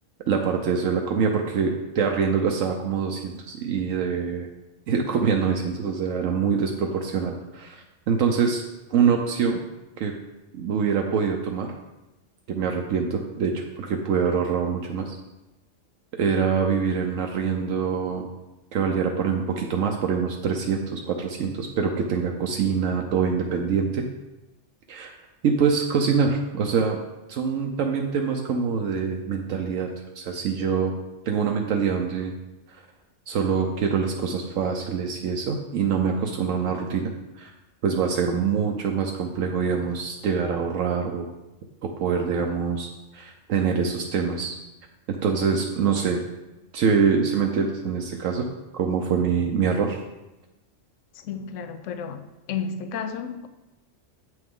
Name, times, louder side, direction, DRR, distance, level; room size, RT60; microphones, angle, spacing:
voice 1, 0.3-4.5 4.9-8.6 8.9-9.6 10.0-10.1 10.5-11.7 12.5-15.2 16.2-18.3 18.7-24.0 24.9-25.1 25.4-27.0 27.3-30.9 31.3-32.3 32.7-32.8 33.3-37.5 37.8-41.3 42.0-44.6 45.1-46.2 46.7-48.4 48.7-50.0, right 6 dB, 80° right, 2 dB, 1.0 m, -25 dB
voice 2, 51.3-52.2 52.5-53.5, left 6 dB, 80° left, 9 dB, 1.0 m, -32 dB
7.9 x 5.9 x 3.7 m, 1.0 s
omnidirectional pair, 1.3 m